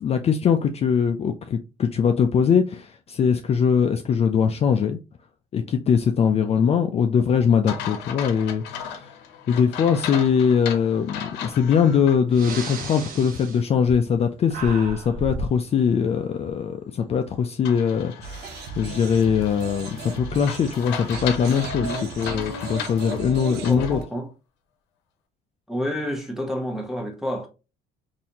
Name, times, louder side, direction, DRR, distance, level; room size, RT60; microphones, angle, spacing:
voice 1, 0.0-5.0 5.5-9.1 9.5-24.0, left 7 dB, 40° left, 0.4 m, -22 dB
sound 1, 7.7-12.2 12.6-12.7 17.7-24.0, left 7 dB, 90° left, 0.7 m, -36 dB
Breathing, 11.7-11.8 12.3-14.2 14.5-15.6, right 2 dB, 55° right, 1.0 m, -34 dB
sound 2, 18.2-24.0, right 5 dB, 80° right, 0.7 m, -36 dB
voice 2, 23.5-24.3 25.7-27.5, equal, ahead, 1.1 m, -29 dB
4.0 x 2.6 x 2.8 m
cardioid pair, 110°, 17 cm